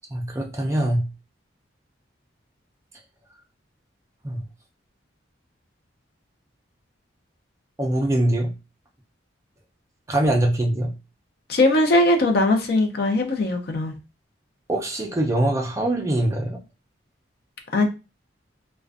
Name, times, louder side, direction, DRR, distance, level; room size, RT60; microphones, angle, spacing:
voice 1, 0.1-1.1 4.2-4.4 7.8-8.5 10.1-10.9 14.7-16.6, right 1 dB, 15° right, 0.3 m, -23 dB
voice 2, 11.5-13.9 17.7-17.9, left 2 dB, 55° left, 0.5 m, -20 dB
2.4 x 2.1 x 2.3 m
head